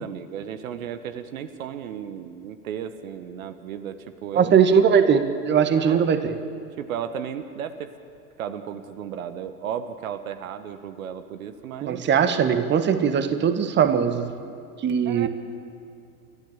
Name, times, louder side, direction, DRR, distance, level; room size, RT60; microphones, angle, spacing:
voice 1, 0.0-4.6 5.8-6.1 6.8-7.9 8.4-12.0 15.0-15.3, right 8 dB, 60° right, 10 dB, 1.3 m, -34 dB
voice 2, 4.3-6.4 11.8-14.3 14.8-15.3, right 7 dB, 25° right, 9 dB, 1.5 m, -20 dB
30.0 x 13.5 x 7.3 m, 2.6 s
figure-of-eight pair, 95°, 47 cm